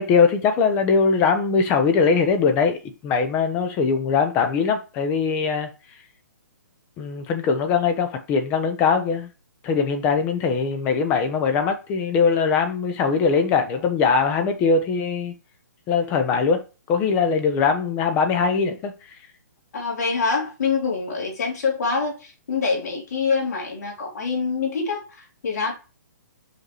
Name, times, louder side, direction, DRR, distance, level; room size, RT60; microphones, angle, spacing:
voice 1, 0.0-5.7 7.0-9.3 9.6-15.3 15.9-19.2, left 5 dB, 20° left, 0.9 m, -21 dB
voice 2, 19.7-25.7, left 4 dB, 60° left, 3.5 m, -25 dB
5.7 x 5.6 x 3.1 m
hypercardioid pair, 160°, 10 cm